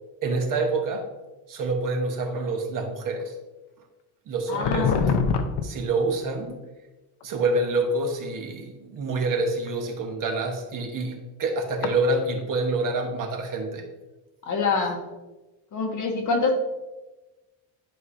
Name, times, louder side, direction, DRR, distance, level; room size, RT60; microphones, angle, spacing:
voice 1, 0.2-1.1 1.5-3.3 4.3-4.9 5.6-6.6 7.2-13.8, right 2 dB, 45° right, 3 dB, 1.1 m, -27 dB
voice 2, 4.5-5.2 14.4-15.0 15.7-16.6, left 3 dB, 40° left, 3 dB, 1.2 m, -26 dB
sound 1, 4.6-5.6 7.2-7.5 9.4-9.7 11.8-12.0, left 5 dB, 65° left, 0.9 m, -23 dB
11.0 x 4.9 x 2.7 m, 1.1 s
cardioid pair, 150°, 45 cm